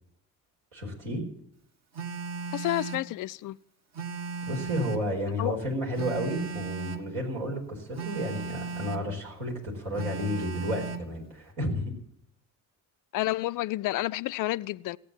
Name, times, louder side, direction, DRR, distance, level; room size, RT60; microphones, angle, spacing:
voice 1, 0.7-1.2 4.4-11.9, equal, 65° right, 4.8 m, -32 dB
Telephone, 1.9-3.1 3.9-5.1 5.9-7.1 7.9-9.1 10.0-11.1, right 4 dB, 35° right, 1.4 m, -36 dB
voice 2, 2.5-3.6 5.4-5.5 13.1-15.0, left 17 dB, 40° left, 0.5 m, -30 dB
16.0 x 8.8 x 8.8 m
figure-of-eight pair, 45°, 50 cm